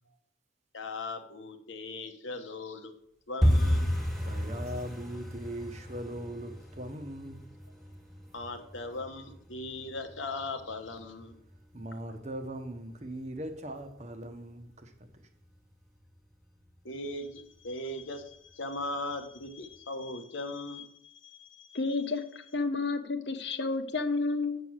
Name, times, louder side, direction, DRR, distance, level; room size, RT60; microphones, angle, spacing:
voice 1, 0.7-2.9 3.3-3.9 8.3-11.3 16.8-21.8, left 2 dB, 90° left, 6 dB, 1.3 m, -39 dB
sound 1, 3.4-14.1 14.4-15.1 15.3-15.6 15.9-16.3 16.6-16.7 17.2-17.7 18.1-18.2 18.7-18.8, equal, ahead, 1.7 m, -33 dB
voice 2, 4.1-7.4 11.7-15.2, right 1 dB, 35° right, 7 dB, 1.0 m, -40 dB
voice 3, 21.7-24.6, left 3 dB, 60° left, 9 dB, 1.0 m, -31 dB
7.4 x 6.8 x 6.4 m, 0.71 s
head